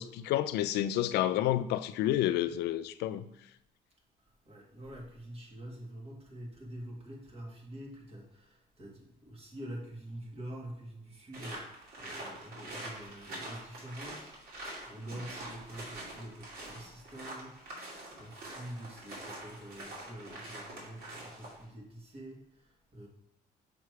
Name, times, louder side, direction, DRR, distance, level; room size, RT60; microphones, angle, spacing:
voice 1, 0.0-3.3, left 12 dB, 75° left, 12 dB, 0.4 m, -30 dB
voice 2, 4.2-23.1, right 1 dB, 35° right, -1 dB, 1.9 m, -46 dB
sound 1, 11.3-21.6, right 1 dB, 60° right, 2.4 m, -45 dB
6.6 x 3.2 x 4.7 m, 0.83 s
cardioid pair, 110°, 17 cm